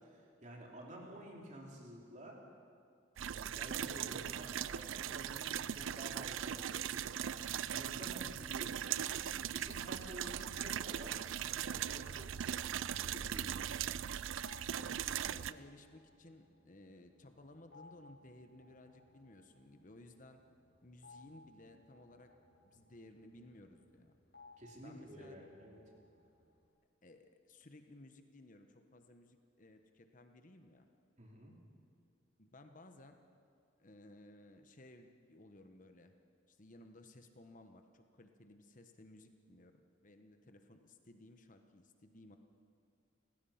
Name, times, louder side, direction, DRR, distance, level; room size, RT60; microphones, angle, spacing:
voice 1, 0.0-2.4 3.2-7.4 7.7-11.2 11.4-13.6 24.6-25.8 31.2-31.5, right 1 dB, 40° right, -1 dB, 3.4 m, -51 dB
sound 1, 3.2-15.5, right 9 dB, 85° right, 0.5 m, -39 dB
sound 2, 12.2-26.7, left 3 dB, 60° left, 4.5 m, -64 dB
voice 2, 14.7-20.4 20.8-22.3 22.6-24.1 24.8-25.4 27.0-30.9 32.4-33.2 33.8-36.1 36.5-42.4, left 1 dB, 40° left, 6 dB, 1.1 m, -58 dB
29.5 x 15.5 x 5.8 m, 2.3 s
head